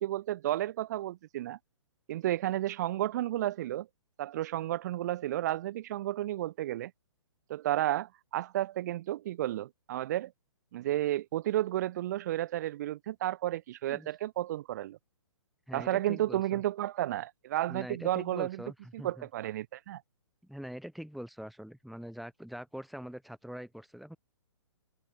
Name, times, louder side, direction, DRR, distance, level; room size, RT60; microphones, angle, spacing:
voice 1, 0.0-1.6 2.1-3.9 4.2-6.9 7.5-10.3 10.7-15.0 15.7-18.6 18.9-20.0, right 14 dB, 35° right, 0.4 m, -32 dB
voice 2, 15.7-16.6 17.7-19.3 20.4-24.2, equal, ahead, 1.2 m, -43 dB
hypercardioid pair, 145°, 17 cm